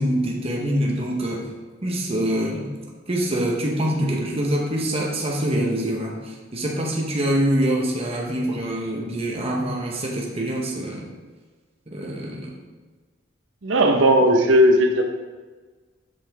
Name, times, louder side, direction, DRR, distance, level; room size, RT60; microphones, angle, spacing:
voice 1, 0.0-1.5 1.8-2.7 3.1-11.1 11.9-12.5, right 1 dB, 30° right, -1 dB, 1.0 m, -25 dB
voice 2, 13.6-15.0, equal, 70° right, 4 dB, 0.9 m, -16 dB
7.6 x 5.8 x 3.5 m, 1.4 s
head